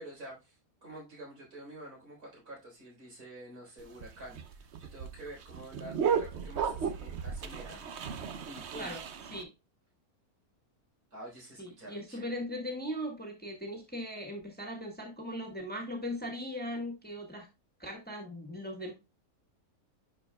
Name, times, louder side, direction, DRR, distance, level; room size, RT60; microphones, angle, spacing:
voice 1, 0.0-7.8 8.4-8.9 11.1-12.3, right 1 dB, 75° right, -2 dB, 4.5 m, -48 dB
sound 1, 3.8-9.4, right 7 dB, 55° right, 0.9 m, -35 dB
voice 2, 11.6-17.5 17.8-18.9, equal, 5° left, 0 dB, 1.7 m, -39 dB
11.0 x 4.6 x 2.3 m, 0.25 s
omnidirectional pair, 1.6 m